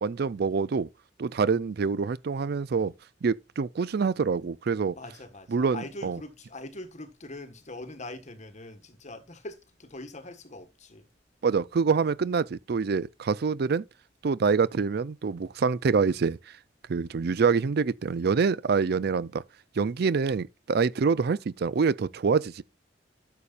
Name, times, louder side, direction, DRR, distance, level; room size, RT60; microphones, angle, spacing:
voice 1, 0.0-0.9 1.2-2.9 3.2-4.9 5.5-6.2 11.4-13.8 14.2-16.4 16.9-19.4 19.8-22.6, right 5 dB, 60° right, 0.4 m, -26 dB
voice 2, 4.9-11.1, left 2 dB, 40° left, 1.5 m, -42 dB
12.5 x 6.9 x 2.5 m
head